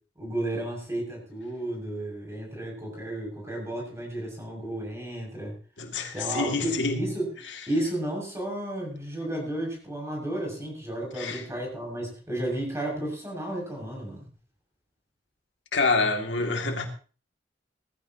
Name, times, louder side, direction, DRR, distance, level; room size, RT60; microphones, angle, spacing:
voice 1, 0.2-5.5 6.1-7.3 7.7-14.3, right 1 dB, 15° right, 6.5 m, -32 dB
voice 2, 5.8-7.0 11.2-11.4 15.7-16.9, left 3 dB, 90° left, 2.4 m, -27 dB
19.0 x 14.5 x 2.9 m
head